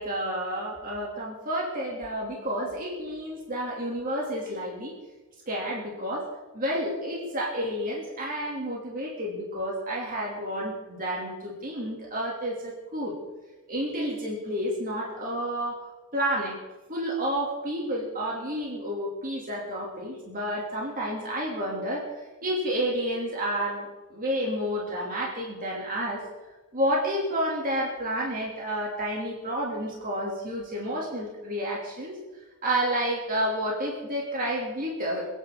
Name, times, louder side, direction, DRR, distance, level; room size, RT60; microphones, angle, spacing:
voice 1, 0.0-4.9 5.5-6.3 6.5-13.2 13.7-15.8 16.1-16.6 16.9-22.1 22.4-26.2 26.7-32.2 32.6-35.3, equal, 40° right, -3 dB, 3.1 m, -30 dB
27.5 x 10.5 x 3.9 m, 1.2 s
head